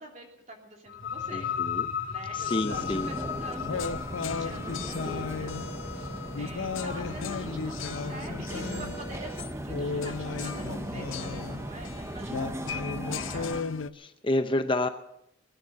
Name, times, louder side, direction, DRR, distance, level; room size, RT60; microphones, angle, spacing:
voice 1, 0.0-1.5 2.1-3.9 4.2-13.5, right 1 dB, 40° right, 1 dB, 3.1 m, -45 dB
sound 1, 0.9-8.4, left 8 dB, 70° left, 2.6 m, -36 dB
voice 2, 1.3-1.9 2.3-3.1 13.9-14.9, left 2 dB, 25° left, 8 dB, 0.7 m, -29 dB
sound 2, 2.4-13.9, left 5 dB, 90° left, 0.6 m, -35 dB
sound 3, 2.7-13.6, right 1 dB, 15° right, 0.6 m, -37 dB
20.0 x 9.9 x 6.5 m, 0.78 s
head